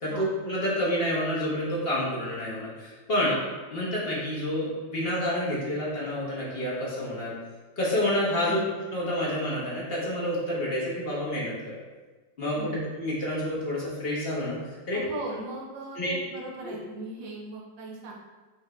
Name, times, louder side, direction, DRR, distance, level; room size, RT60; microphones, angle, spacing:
voice 1, 0.0-3.3 3.7-7.3 7.8-8.6 8.9-11.7 12.4-15.0 15.9-16.1 16.6-16.8, left 1 dB, 35° left, -6 dB, 1.2 m, -29 dB
voice 2, 14.9-18.1, right 2 dB, 80° right, -1 dB, 1.6 m, -39 dB
5.8 x 2.6 x 3.2 m, 1.3 s
omnidirectional pair, 2.1 m